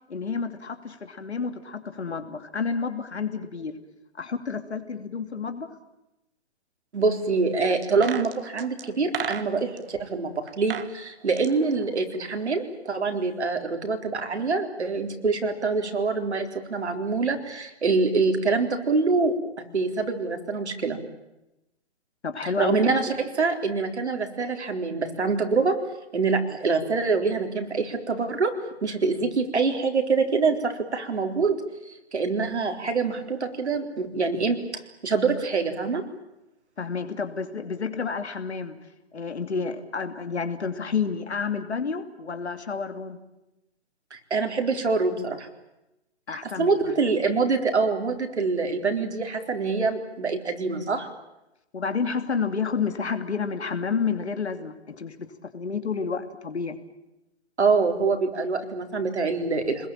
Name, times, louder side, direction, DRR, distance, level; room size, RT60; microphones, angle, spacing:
voice 1, 0.1-3.8 4.2-5.7 22.2-22.8 36.8-38.8 39.1-43.2 46.3-46.8 51.7-56.8, left 5 dB, 70° left, 8 dB, 2.9 m, -30 dB
voice 2, 6.9-10.3 10.6-19.3 19.7-21.0 22.4-25.8 26.1-28.5 28.8-31.6 32.1-36.0 44.1-45.5 46.3-51.1 57.6-59.9, right 4 dB, 75° right, 4 dB, 4.2 m, -25 dB
sound 1, 7.8-9.8 10.5-10.9 11.2-12.6 12.9-13.0, right 8 dB, 55° right, 1.9 m, -35 dB
27.5 x 21.0 x 9.0 m, 0.93 s
figure-of-eight pair, 130°, 34 cm